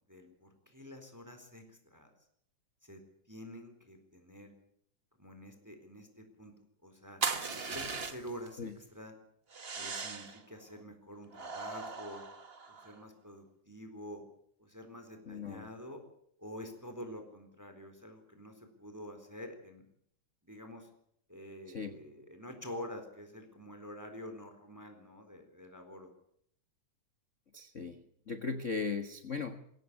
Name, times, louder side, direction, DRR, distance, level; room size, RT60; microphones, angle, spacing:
voice 1, 0.1-2.1 2.8-3.0 3.3-4.5 5.2-6.5 6.8-7.2 7.5-9.1 9.7-12.2 12.7-14.2 14.6-16.0 16.4-19.9 20.4-20.9 21.3-26.1, equal, 5° right, 6 dB, 3.7 m, -47 dB
sound 1, 7.2-8.5 9.5-10.4 11.3-13.0, right 4 dB, 40° right, 0.9 m, -38 dB
voice 2, 15.3-15.7 21.7-22.0 27.5-29.6, left 5 dB, 45° left, 8 dB, 1.0 m, -38 dB
22.5 x 17.0 x 8.3 m, 0.68 s
omnidirectional pair, 3.4 m